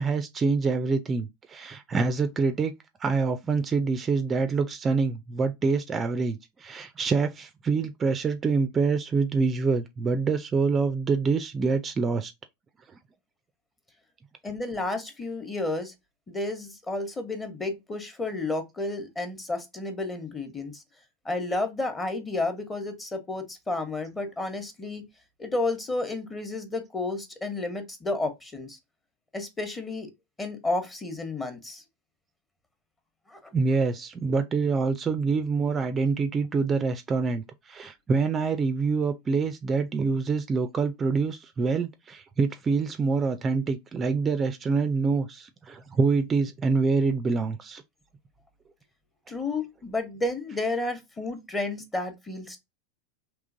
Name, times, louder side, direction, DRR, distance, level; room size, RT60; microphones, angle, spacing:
voice 1, 0.0-2.7 3.0-12.3 33.5-47.8, right 4 dB, 25° right, 0.4 m, -26 dB
voice 2, 14.4-15.9 16.3-20.8 21.2-25.0 25.4-28.8 29.3-30.1 30.4-31.8 33.3-33.4 49.3-52.6, left 2 dB, 15° left, 1.0 m, -31 dB
3.7 x 2.9 x 2.6 m
hypercardioid pair, 105°, 0 cm